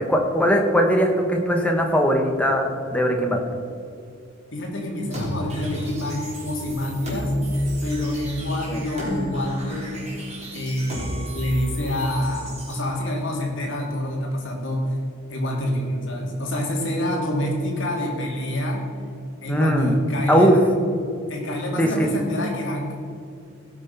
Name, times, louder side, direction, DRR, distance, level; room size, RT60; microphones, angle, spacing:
voice 1, 0.0-3.4 8.7-8.8 19.5-20.0 20.3-20.6 21.8-22.1, equal, 5° left, 2 dB, 1.3 m, -20 dB
voice 2, 4.5-7.3 7.8-9.9 10.5-14.9 15.3-18.9 19.4-20.6 21.3-23.0, left 1 dB, 60° left, -1 dB, 2.5 m, -27 dB
sound 1, 5.1-12.8, equal, 30° right, 3.4 m, -31 dB
17.0 x 6.2 x 5.5 m, 2.5 s
head